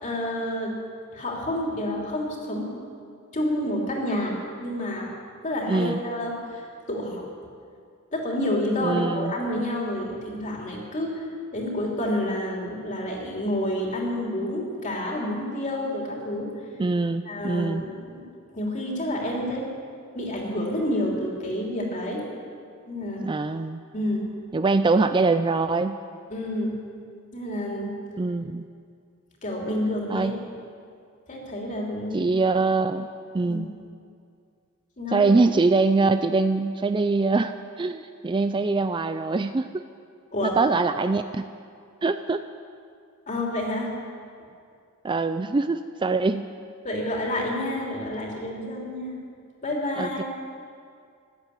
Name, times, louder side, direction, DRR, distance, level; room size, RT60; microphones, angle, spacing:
voice 1, 0.0-0.8 1.1-2.7 3.3-5.1 5.4-6.4 6.9-7.2 8.1-11.3 11.5-16.5 17.3-18.3 18.5-19.7 20.1-22.3 22.9-23.3 23.9-24.3 26.3-26.8 27.3-28.0 29.4-30.3 31.3-32.2 33.5-33.6 35.0-35.3 40.3-40.6 43.3-43.9 46.8-49.2 49.6-50.2, left 1 dB, 35° left, -2 dB, 3.2 m, -29 dB
voice 2, 5.7-6.0 8.8-9.3 16.8-17.8 23.2-23.8 24.5-26.0 28.2-28.6 30.1-30.4 32.1-33.1 33.3-33.7 35.1-39.8 40.4-41.5 42.0-42.4 45.0-46.5 50.0-50.2, right 3 dB, 25° right, 10 dB, 0.4 m, -23 dB
15.0 x 11.5 x 8.3 m, 2.3 s
head